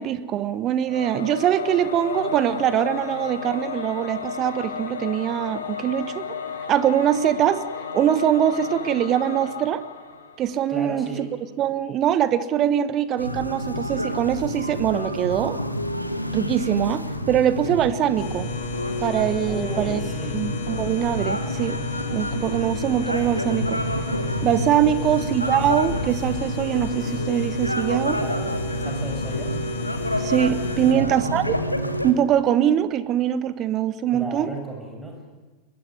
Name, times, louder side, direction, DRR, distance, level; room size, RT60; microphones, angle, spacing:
voice 1, 0.0-6.2 6.7-7.6 7.9-9.8 10.4-11.3 11.6-15.6 16.3-18.5 19.0-20.0 20.3-21.8 22.1-23.8 24.4-28.2 30.2-31.5 32.0-34.5, right 10 dB, 35° right, 14 dB, 1.2 m, -23 dB
Singing / Musical instrument, 0.9-10.9, left 5 dB, 70° left, 2.7 m, -33 dB
voice 2, 10.7-11.3 19.5-20.4 24.8-25.1 28.1-29.6 30.8-31.4 34.1-35.2, right 2 dB, 10° right, 2 dB, 7.2 m, -34 dB
sound 1, 13.2-32.1, equal, 85° left, 1.8 m, -28 dB
sound 2, 18.2-30.9, left 4 dB, 40° left, 3.3 m, -33 dB
23.5 x 21.0 x 9.6 m, 1.3 s
figure-of-eight pair, 90°, 0 cm